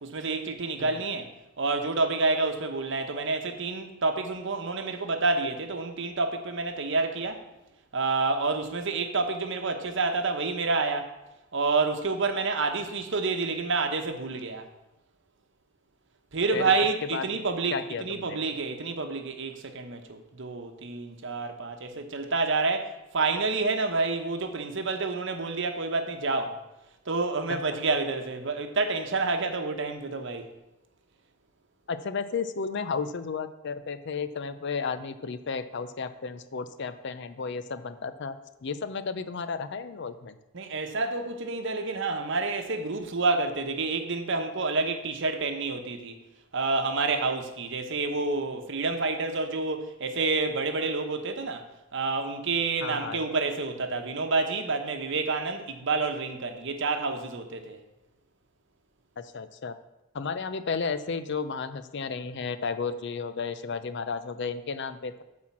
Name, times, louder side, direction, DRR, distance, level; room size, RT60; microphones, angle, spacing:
voice 1, 0.0-1.3 1.6-7.4 7.9-11.1 11.5-14.7 16.3-26.6 27.1-30.5 40.5-46.2 46.5-51.7 51.9-57.8, right 3 dB, 60° right, 1.0 m, -28 dB
voice 2, 17.7-18.4 31.9-38.4 38.6-40.4 52.8-53.2 59.2-59.7 60.1-65.2, left 5 dB, 55° left, 0.5 m, -33 dB
8.7 x 4.3 x 7.3 m
head